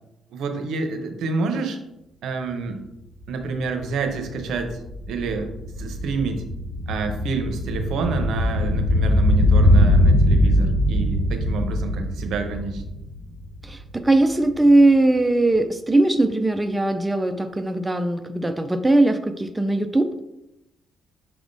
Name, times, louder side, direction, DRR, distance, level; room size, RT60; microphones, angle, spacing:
voice 1, 0.3-1.8 2.2-2.8 3.3-4.8 5.1-5.5 5.8-6.4 6.9-12.8, right 4 dB, 80° right, 5 dB, 0.7 m, -28 dB
sound 1, 3.2-3.3 3.5-13.9 14.2-14.3, left 1 dB, 35° left, 1.0 m, -21 dB
voice 2, 13.6-20.1, right 2 dB, 15° right, 7 dB, 0.3 m, -19 dB
5.9 x 3.4 x 2.6 m, 0.88 s
cardioid pair, 90°, 0 cm